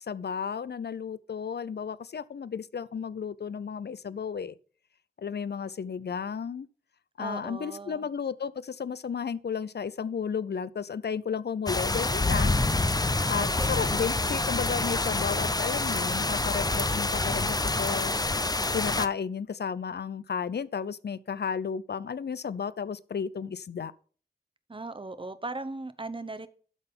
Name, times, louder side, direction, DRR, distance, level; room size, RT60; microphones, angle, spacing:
voice 1, 0.1-4.5 5.2-6.7 7.2-12.5 13.3-18.1 18.7-23.9, left 6 dB, 75° left, 0.5 m, -33 dB
voice 2, 7.2-8.1 13.4-14.0 24.7-26.5, right 2 dB, 30° right, 0.8 m, -38 dB
sound 1, 11.7-19.1, left 2 dB, 20° left, 0.5 m, -27 dB
12.0 x 4.0 x 5.3 m
wide cardioid pair, 55°, 17 cm